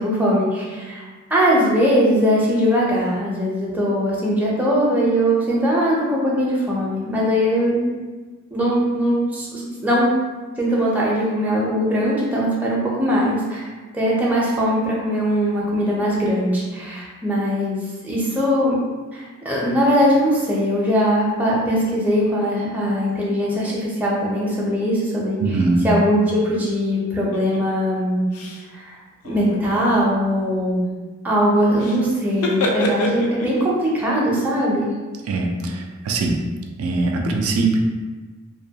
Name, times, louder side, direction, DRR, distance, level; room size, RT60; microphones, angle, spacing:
voice 1, 0.0-7.9 8.5-10.1 10.6-13.7 13.9-17.8 18.0-18.7 19.1-28.3 28.7-29.0 29.2-30.8 31.2-34.9, equal, 5° right, -6 dB, 0.4 m, -20 dB
voice 2, 25.4-25.9 35.3-36.4 36.8-37.8, right 3 dB, 80° right, 2 dB, 0.3 m, -21 dB
sound 1, 27.3-27.6 28.3-28.7 29.1-29.9 31.8-32.0 32.3-33.7, left 1 dB, 80° left, 0.4 m, -27 dB
2.6 x 2.2 x 2.7 m, 1.3 s
head